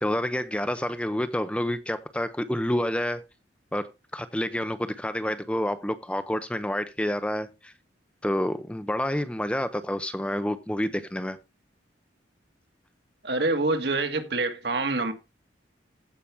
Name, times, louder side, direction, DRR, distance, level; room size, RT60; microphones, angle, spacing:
voice 1, 0.0-3.3 3.7-7.7 8.2-11.4, left 1 dB, 5° left, 0.6 m, -28 dB
voice 2, 13.2-15.1, right 2 dB, 60° right, 1.9 m, -26 dB
15.5 x 5.8 x 3.5 m
head